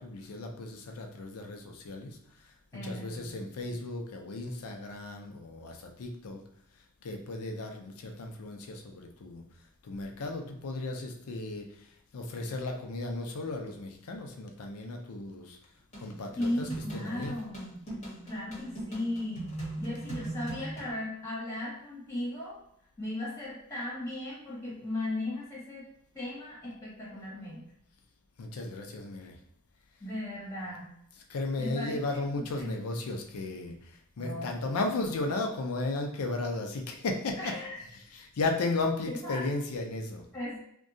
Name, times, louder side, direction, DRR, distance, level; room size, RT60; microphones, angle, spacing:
voice 1, 0.0-2.2 2.4-6.4 7.0-9.4 9.8-11.9 12.1-15.6 16.0-17.3 28.4-29.4 31.3-37.5 38.1-40.2, left 2 dB, 85° left, 3 dB, 0.5 m, -35 dB
voice 2, 2.7-3.8 16.4-17.8 18.2-19.5 19.8-22.6 23.0-25.8 26.1-27.7 30.0-30.9 31.6-32.2 32.5-32.8 34.2-34.5 37.4-37.8 39.1-39.4 40.3-40.6, left 1 dB, 15° left, -8 dB, 1.4 m, -37 dB
sound 1, 15.9-20.9, right 2 dB, 30° left, 1.0 m, -40 dB
2.7 x 2.2 x 2.6 m, 0.71 s
head